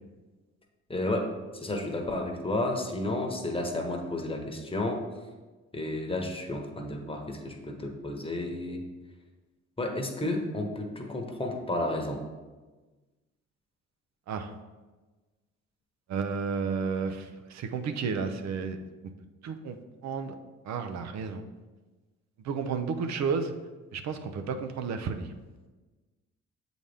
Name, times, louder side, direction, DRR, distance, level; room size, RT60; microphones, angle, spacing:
voice 1, 0.9-5.0 5.7-8.8 9.8-12.2, left 1 dB, 20° left, 2 dB, 1.1 m, -32 dB
voice 2, 16.1-18.8 19.4-19.8 20.0-20.3 20.6-21.4 22.4-23.5 23.9-25.3, right 5 dB, 60° right, 7 dB, 0.7 m, -32 dB
7.2 x 4.0 x 3.5 m, 1.3 s
supercardioid pair, 70°, 30 cm